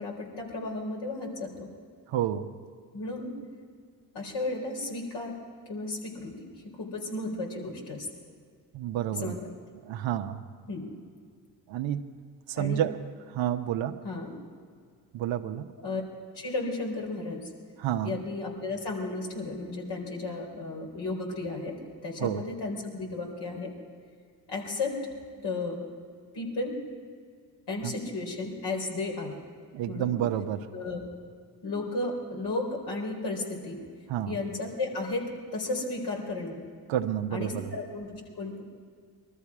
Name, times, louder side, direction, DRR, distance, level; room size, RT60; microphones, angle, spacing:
voice 1, 0.0-1.7 2.9-3.3 4.1-5.3 5.7-6.5 6.8-8.1 9.2-9.5 10.7-10.8 12.6-12.8 14.0-14.3 15.8-16.0 16.3-17.5 18.0-21.8 22.0-23.7 24.5-24.9 25.4-25.8 26.3-26.8 27.7-29.4 29.9-30.2 30.7-31.0 31.6-33.8 34.3-35.2 35.5-36.6 37.3-38.6, left 2 dB, 60° left, 0 dB, 4.3 m, -34 dB
voice 2, 2.1-2.5 8.7-9.4 9.9-10.4 11.7-12.1 12.5-13.0 13.3-14.0 15.1-15.7 17.8-18.2 22.2-22.4 27.8-27.9 29.7-30.6 34.1-34.4 36.9-37.7, right 11 dB, 75° right, 6 dB, 1.0 m, -29 dB
21.5 x 13.5 x 4.8 m, 2.1 s
supercardioid pair, 65°, 46 cm